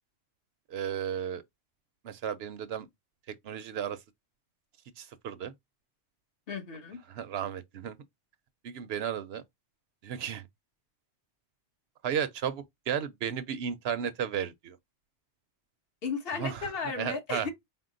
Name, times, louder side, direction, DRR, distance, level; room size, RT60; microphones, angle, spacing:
voice 1, 0.7-1.4 2.0-2.9 3.4-4.0 5.0-5.5 7.1-8.0 8.6-9.4 10.0-10.4 12.0-14.8 16.4-16.6 17.0-17.5, right 8 dB, 70° right, 0.8 m, -34 dB
voice 2, 6.5-7.0 16.0-17.5, left 5 dB, 60° left, 1.3 m, -34 dB
4.4 x 2.0 x 3.8 m
omnidirectional pair, 1.2 m